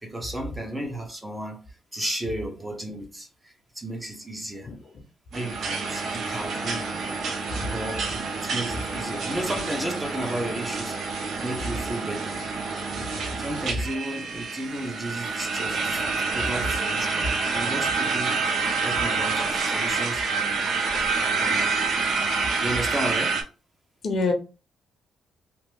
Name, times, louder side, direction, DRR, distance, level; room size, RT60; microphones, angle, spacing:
voice 1, 0.0-4.7 5.3-7.2 7.7-11.0 11.4-12.5 13.4-16.0 16.3-20.6 21.1-21.7 22.6-23.4, right 1 dB, 15° right, 0.8 m, -34 dB
voice 2, 4.6-4.7 6.5-6.7 7.5-7.7 13.0-13.2 24.0-24.3, left 3 dB, 55° left, 0.9 m, -28 dB
sound 1, 5.3-23.4, right 4 dB, 65° right, 0.7 m, -28 dB
3.0 x 2.0 x 3.3 m
cardioid pair, 90°, 0 cm